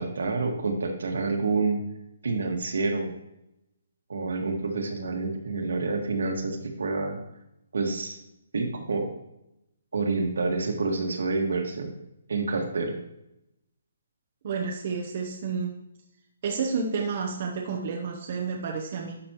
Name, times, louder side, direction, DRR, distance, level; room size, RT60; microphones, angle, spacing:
voice 1, 0.0-1.8 2.2-3.1 4.1-7.2 7.7-8.2 8.5-9.1 9.9-11.9 12.3-13.0, right 3 dB, 75° right, 3 dB, 1.7 m, -28 dB
voice 2, 14.4-15.7 16.4-19.2, right 5 dB, 30° right, 1 dB, 0.7 m, -30 dB
11.5 x 6.2 x 3.0 m, 0.85 s
hypercardioid pair, 180°, 0 cm